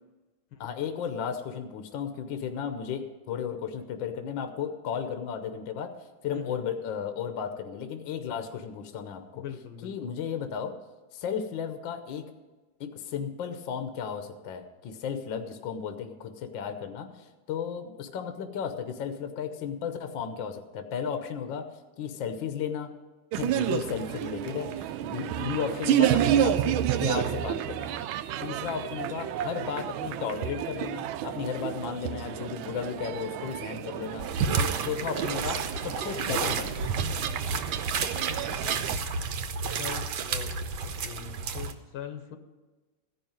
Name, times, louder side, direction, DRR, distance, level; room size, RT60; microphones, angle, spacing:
voice 1, 0.6-5.9 6.2-9.4 9.8-10.7 11.1-12.2 12.8-21.7 22.0-22.9 23.3-26.7 27.0-28.0 28.4-34.2 34.6-36.9, left 7 dB, 70° left, 7 dB, 1.5 m, -34 dB
voice 2, 6.3-6.7 9.3-10.1 25.4-25.6 38.2-39.0 39.8-40.6 40.8-42.4, left 9 dB, 85° left, 6 dB, 1.9 m, -42 dB
sound 1, 23.3-39.0, right 10 dB, 80° right, 1.4 m, -30 dB
sound 2, 34.2-41.7, right 5 dB, 65° right, 1.3 m, -31 dB
14.5 x 5.6 x 8.8 m, 1.2 s
omnidirectional pair, 2.2 m